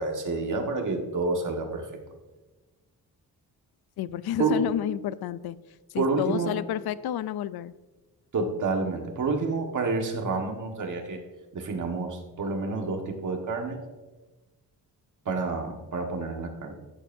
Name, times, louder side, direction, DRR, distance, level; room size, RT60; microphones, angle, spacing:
voice 1, 0.0-1.9 4.4-4.7 6.0-6.5 8.3-11.2 11.5-13.8 15.2-16.8, right 3 dB, 55° right, 3 dB, 1.7 m, -29 dB
voice 2, 4.0-5.6 5.9-7.7, left 11 dB, 85° left, 16 dB, 0.5 m, -30 dB
14.0 x 12.0 x 2.7 m, 1.2 s
wide cardioid pair, 140°, 37 cm